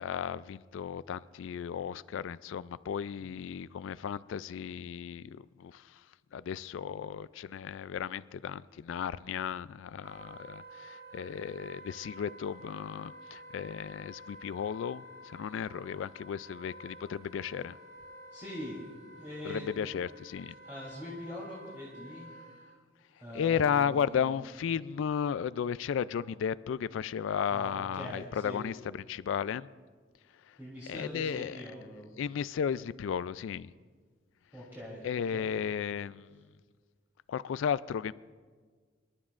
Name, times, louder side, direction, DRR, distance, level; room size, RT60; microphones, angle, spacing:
voice 1, 0.0-6.0 6.3-17.8 19.4-20.5 23.3-29.7 30.5-30.6 30.9-31.6 32.2-33.7 35.0-36.3 37.3-38.1, left 7 dB, 75° left, 0.3 m, -34 dB
Wind instrument woodwind instrument, 10.0-22.7, equal, 50° right, 2.6 m, -51 dB
voice 2, 18.3-19.9 20.6-22.3 23.1-24.3 27.5-28.6 30.6-32.1 34.5-35.5, left 1 dB, 10° right, 3.1 m, -43 dB
26.5 x 12.0 x 2.5 m
head